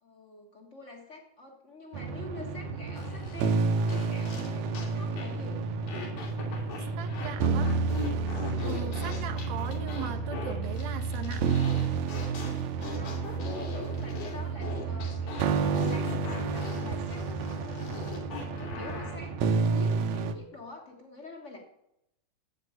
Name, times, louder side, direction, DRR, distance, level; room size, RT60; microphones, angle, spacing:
voice 1, 0.0-5.6 7.4-7.8 12.8-18.0 18.4-21.6, left 2 dB, 65° left, 1 dB, 0.7 m, -47 dB
sound 1, 1.9-20.3, right 4 dB, 70° right, 1.8 m, -30 dB
sound 2, 3.0-4.9 5.2-5.4 5.9-7.3 7.6-19.2, left 5 dB, 90° left, 4.5 m, -41 dB
voice 2, 7.0-7.7 8.6-11.6, right 8 dB, 85° right, 7 dB, 2.9 m, -38 dB
9.5 x 8.2 x 9.4 m, 0.83 s
omnidirectional pair, 4.1 m